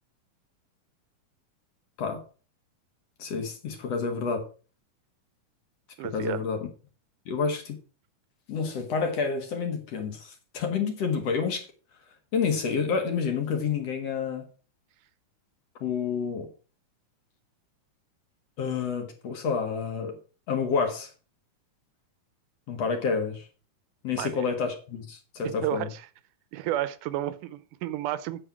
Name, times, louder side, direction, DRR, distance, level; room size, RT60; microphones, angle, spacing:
voice 1, 3.2-4.4 6.1-6.6 7.3-7.7 8.5-11.7 12.3-14.4 15.8-16.5 18.6-20.2 20.5-21.1 22.7-23.5 24.0-25.9, left 5 dB, 55° left, 5 dB, 2.6 m, -29 dB
voice 2, 6.0-6.5 24.2-24.3 25.4-26.1 26.5-28.4, right 13 dB, 80° right, 15 dB, 2.2 m, -32 dB
9.0 x 6.7 x 6.1 m, 0.37 s
omnidirectional pair, 3.7 m